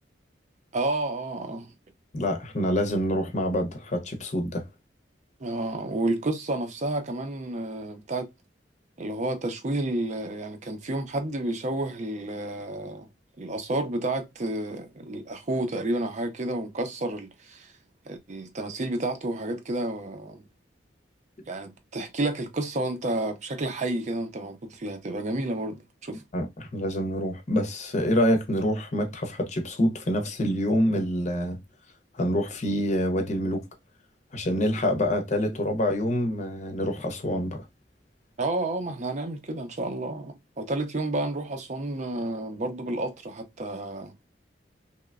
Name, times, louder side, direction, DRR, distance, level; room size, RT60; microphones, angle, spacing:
voice 1, 0.7-1.7 5.4-8.3 9.0-13.1 13.4-17.7 18.1-20.4 21.5-26.2 38.4-44.1, right 2 dB, 40° right, 0.5 m, -30 dB
voice 2, 2.1-4.6 26.3-31.6 32.1-33.6 34.3-37.6, equal, 40° left, 0.6 m, -26 dB
3.0 x 2.1 x 2.3 m
head